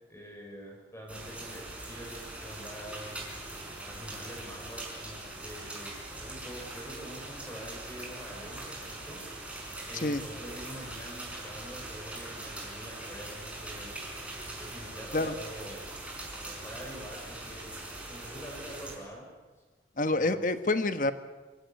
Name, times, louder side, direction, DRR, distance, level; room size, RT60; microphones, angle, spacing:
voice 1, 0.1-3.2 3.9-5.9 6.2-9.2 9.9-13.9 14.6-15.8 16.4-17.7 18.1-19.3 20.1-20.4, equal, 15° left, -2 dB, 4.9 m, -45 dB
sound 1, 1.1-18.9, right 2 dB, 5° right, 5.0 m, -42 dB
voice 2, 20.0-21.1, left 2 dB, 45° left, 10 dB, 1.3 m, -27 dB
24.5 x 16.5 x 9.7 m, 1.3 s
head